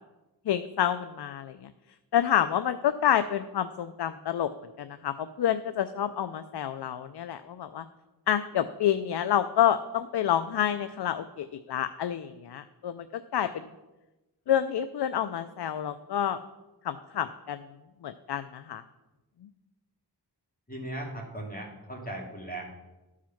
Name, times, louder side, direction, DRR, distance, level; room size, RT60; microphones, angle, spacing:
voice 1, 0.5-1.7 2.1-4.5 4.8-7.8 8.3-13.7 14.5-16.4 16.8-17.6 18.0-18.8, left 10 dB, 70° left, 11 dB, 0.5 m, -28 dB
voice 2, 20.7-22.7, right 1 dB, 20° left, -1 dB, 2.4 m, -38 dB
12.5 x 4.9 x 5.8 m, 1.1 s
wide cardioid pair, 85°, 41 cm